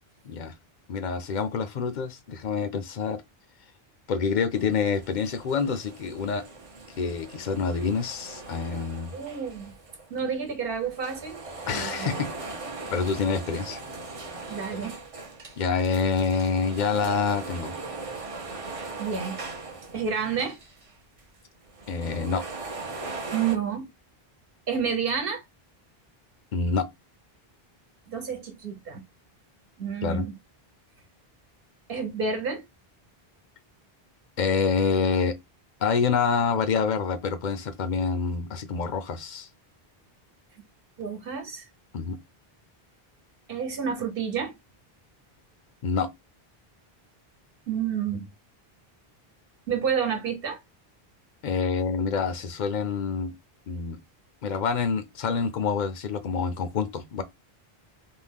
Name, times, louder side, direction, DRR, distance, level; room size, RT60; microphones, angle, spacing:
voice 1, 0.9-3.2 4.1-6.4 7.0-9.1 11.7-12.5 12.9-13.8 15.6-17.7 21.9-22.4 26.5-26.9 30.0-30.3 34.4-35.4 35.8-39.5 41.9-42.2 45.8-46.1 51.4-53.3 53.7-54.0 54.4-57.2, left 5 dB, 55° left, 0.6 m, -27 dB
sound 1, 4.5-10.2 10.7-20.9 21.2-21.3 21.7-23.6, right 3 dB, 40° right, 0.6 m, -40 dB
voice 2, 9.1-9.6 10.1-11.4 11.7-12.2 14.5-15.0 19.0-19.4 19.9-20.6 23.3-23.9 24.7-25.4 28.1-29.0 29.8-30.3 31.9-32.6 41.0-41.7 43.5-44.5 47.7-48.3 49.7-50.6, right 6 dB, 65° right, 1.1 m, -29 dB
2.7 x 2.1 x 3.4 m
omnidirectional pair, 1.0 m